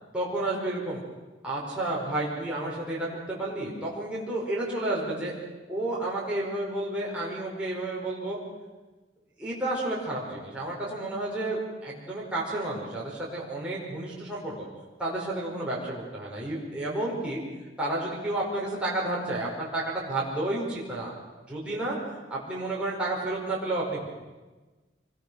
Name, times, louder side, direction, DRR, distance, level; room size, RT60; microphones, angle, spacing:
voice 1, 0.1-1.0 1.4-5.3 5.7-8.4 9.4-14.6 15.0-17.4 17.8-21.1 21.5-22.0 22.3-24.1, right 2 dB, 5° right, -6 dB, 5.1 m, -31 dB
25.5 x 21.5 x 6.4 m, 1.2 s
head